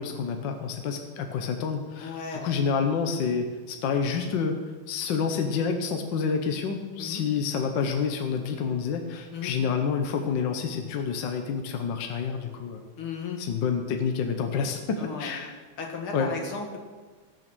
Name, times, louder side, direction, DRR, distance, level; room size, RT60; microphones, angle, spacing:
voice 1, 0.0-4.6 4.9-12.8 13.4-15.5 16.1-16.3, left 6 dB, 65° left, 5 dB, 1.6 m, -28 dB
voice 2, 2.0-2.6 7.0-7.2 9.3-9.5 13.0-13.4 15.0-15.3 15.8-16.8, left 5 dB, 80° left, 2 dB, 2.7 m, -35 dB
19.5 x 6.7 x 6.1 m, 1.4 s
omnidirectional pair, 2.3 m